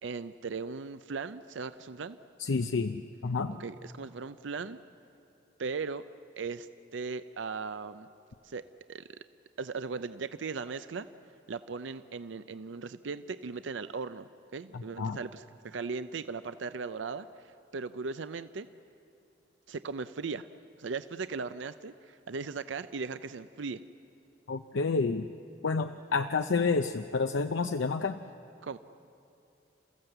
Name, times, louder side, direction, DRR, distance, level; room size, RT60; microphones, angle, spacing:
voice 1, 0.0-2.2 3.6-4.8 5.6-6.0 6.4-8.1 8.4-8.6 8.9-9.0 9.6-11.1 11.5-18.7 19.7-20.5 20.8-23.8 28.6-28.8, right 4 dB, 75° right, 12 dB, 0.5 m, -38 dB
voice 2, 2.4-3.6 14.7-15.2 24.5-25.3 25.6-28.2, left 4 dB, 80° left, 7 dB, 0.6 m, -29 dB
29.0 x 15.0 x 7.9 m, 2.7 s
head